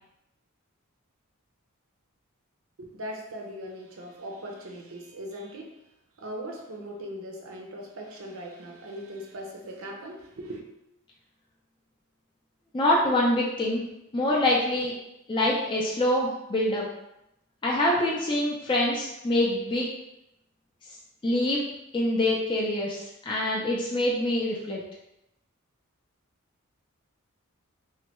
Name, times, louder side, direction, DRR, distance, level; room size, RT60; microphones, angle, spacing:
voice 1, 2.8-5.8 6.2-10.6, equal, 65° right, 1 dB, 0.6 m, -39 dB
voice 2, 12.7-13.8 14.1-14.9 15.3-16.9 17.6-19.9 21.2-21.6 21.9-24.8, left 1 dB, 20° left, -4 dB, 0.4 m, -25 dB
3.1 x 2.2 x 2.9 m, 0.85 s
head